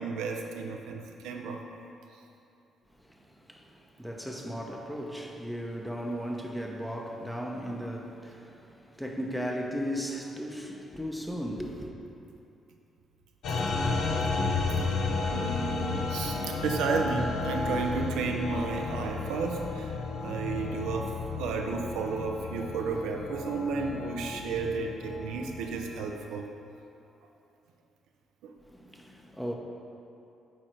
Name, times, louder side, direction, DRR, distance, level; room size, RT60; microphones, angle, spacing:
voice 1, 0.0-1.6 15.3-19.9 20.2-26.5, right 4 dB, 90° right, 0.5 m, -32 dB
voice 2, 3.0-11.9 28.7-29.6, equal, ahead, 0.8 m, -36 dB
sound 1, 13.4-26.0, left 3 dB, 75° left, 0.8 m, -32 dB
9.0 x 3.8 x 4.5 m
cardioid pair, 85°, 0 cm